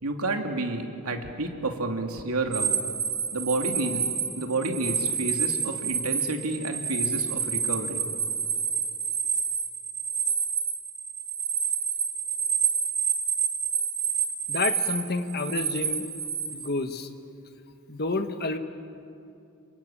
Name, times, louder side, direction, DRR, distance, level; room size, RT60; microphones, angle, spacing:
voice 1, 0.0-2.8 3.3-4.0 4.4-8.0, right 2 dB, 90° right, 4 dB, 2.7 m, -30 dB
sound 1, 2.5-16.7, right 6 dB, 35° right, 3.5 m, -28 dB
voice 2, 14.5-16.1 16.5-17.1 17.9-18.6, left 3 dB, 45° left, 8 dB, 1.5 m, -29 dB
28.0 x 24.0 x 8.8 m, 2.6 s
head